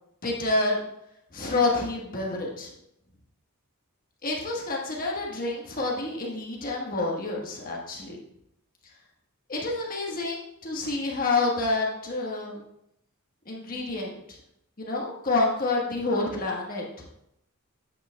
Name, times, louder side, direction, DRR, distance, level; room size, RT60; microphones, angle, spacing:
voice 1, 0.2-0.8 1.3-2.7 4.2-8.2 9.5-12.6 13.4-14.4 14.8-17.1, left 2 dB, 40° left, -2 dB, 1.3 m, -28 dB
8.8 x 7.3 x 2.3 m, 0.76 s
head